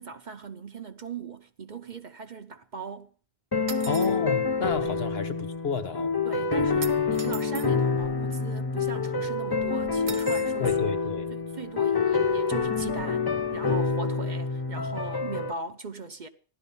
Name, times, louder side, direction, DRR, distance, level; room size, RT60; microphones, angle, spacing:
voice 1, 0.0-3.1 4.8-5.0 6.2-10.9 11.3-16.3, right 5 dB, 45° right, 1.0 m, -39 dB
sound 1, 3.5-15.5, left 4 dB, 25° left, 0.7 m, -27 dB
sound 2, 3.7-4.2 6.8-7.7 10.1-10.6, right 6 dB, 70° right, 1.2 m, -39 dB
voice 2, 3.9-6.1 10.6-11.3, left 6 dB, 65° left, 1.3 m, -31 dB
15.5 x 12.0 x 5.4 m
omnidirectional pair, 1.1 m